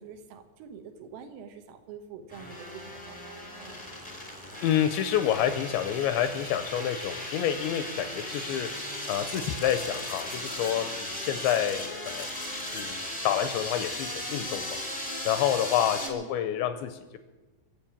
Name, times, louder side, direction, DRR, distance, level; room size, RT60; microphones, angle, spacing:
voice 1, 0.0-4.1 16.0-16.3, right 6 dB, 85° right, 7 dB, 3.9 m, -46 dB
sound 1, 2.3-16.1, left 1 dB, 15° left, 0.8 m, -37 dB
voice 2, 4.6-8.7 9.1-12.3 12.7-13.0 13.2-14.8 15.2-17.2, left 10 dB, 80° left, 10 dB, 2.7 m, -28 dB
22.5 x 7.5 x 7.3 m, 1.3 s
omnidirectional pair, 5.7 m